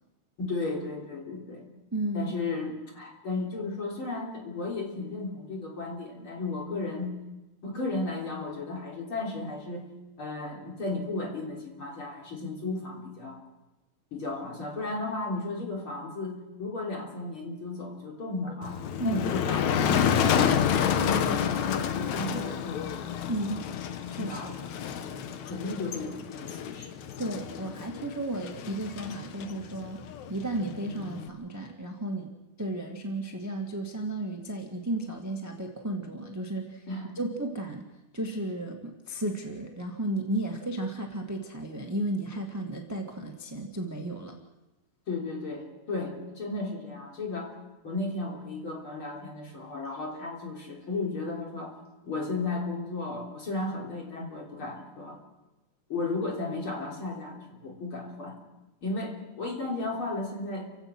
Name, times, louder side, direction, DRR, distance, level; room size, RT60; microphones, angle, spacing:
voice 1, 0.4-1.7 2.1-7.2 7.6-9.9 10.2-13.4 14.1-20.5 20.9-23.0 24.2-24.5 25.1-27.0 36.9-37.1 45.1-47.5 47.8-51.8 52.0-55.2 55.9-58.4 58.8-60.7, left 3 dB, 40° left, 0 dB, 4.1 m, -34 dB
voice 2, 1.9-2.3 19.0-19.3 23.3-23.7 24.1-24.6 27.2-30.0 30.3-32.3 32.6-36.8 37.1-37.8 38.1-44.4, right 1 dB, 10° right, 2 dB, 1.3 m, -33 dB
Motor vehicle (road), 18.6-31.3, left 8 dB, 70° left, 2.3 m, -29 dB
29.5 x 16.5 x 6.2 m, 1.0 s
omnidirectional pair, 3.6 m